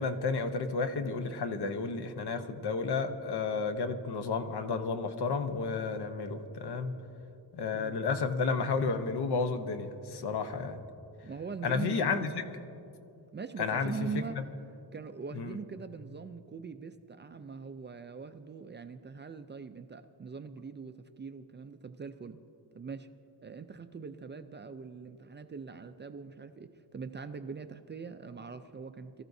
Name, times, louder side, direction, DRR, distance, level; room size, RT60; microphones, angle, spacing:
voice 1, 0.0-6.9 7.5-10.8 11.6-12.4 13.6-13.9 15.4-15.6, left 4 dB, 70° left, 7 dB, 1.0 m, -32 dB
voice 2, 11.2-12.3 13.3-14.4 14.9-22.4 22.7-23.1 23.4-29.2, right 5 dB, 30° right, 9 dB, 0.4 m, -42 dB
23.5 x 14.0 x 2.7 m, 2.7 s
wide cardioid pair, 135°, 40 cm